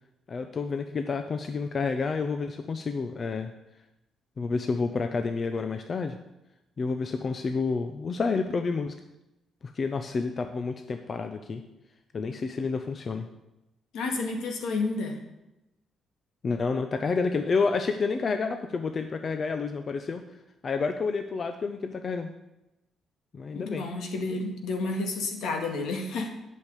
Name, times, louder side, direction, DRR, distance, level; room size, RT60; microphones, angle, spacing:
voice 1, 0.3-3.5 4.4-6.2 6.8-8.9 9.6-11.6 12.1-13.3 16.4-20.2 20.6-22.3 23.3-23.8, left 4 dB, 45° left, 7 dB, 0.8 m, -29 dB
voice 2, 13.9-15.2 23.5-26.3, left 3 dB, 80° left, 3 dB, 2.1 m, -30 dB
8.8 x 6.6 x 8.3 m, 0.94 s
cardioid pair, 90°, 0 cm